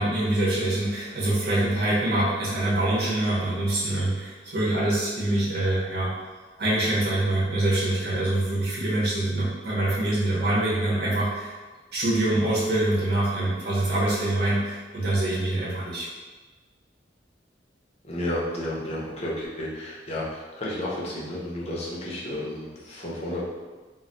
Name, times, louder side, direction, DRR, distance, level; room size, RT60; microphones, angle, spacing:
voice 1, 0.0-6.1 6.6-11.5 11.9-16.1, right 1 dB, 60° right, -7 dB, 0.8 m, -25 dB
voice 2, 18.0-23.4, left 1 dB, 35° left, -5 dB, 0.6 m, -32 dB
2.2 x 2.1 x 3.8 m, 1.3 s
head